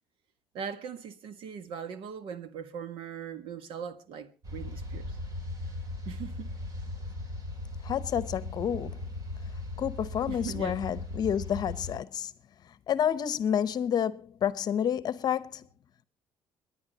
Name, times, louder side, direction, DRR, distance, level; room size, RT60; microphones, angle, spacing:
voice 1, 0.5-5.2 6.0-6.5 10.3-10.8, right 7 dB, 75° right, 1.4 m, -40 dB
sound 1, 4.4-12.0, left 2 dB, 40° right, 3.2 m, -38 dB
voice 2, 7.8-9.0 9.8-12.3 12.9-15.6, left 9 dB, 45° left, 0.8 m, -29 dB
28.5 x 10.5 x 2.8 m
cardioid pair, 145°, 9 cm